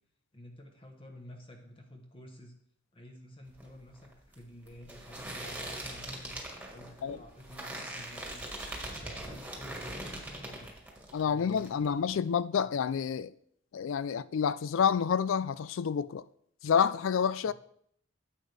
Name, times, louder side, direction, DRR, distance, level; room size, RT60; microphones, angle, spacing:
voice 1, 0.3-2.5 2.9-6.4 6.7-8.6 8.9-10.7 11.2-12.2 12.5-12.7 17.4-17.5, left 1 dB, 30° left, 1.1 m, -51 dB
sound 1, 3.5-11.2 11.5-12.2, right 1 dB, 5° right, 1.7 m, -42 dB
voice 2, 11.1-13.3 13.7-16.2 16.6-17.5, left 7 dB, 80° left, 0.4 m, -28 dB
10.0 x 8.2 x 3.4 m
head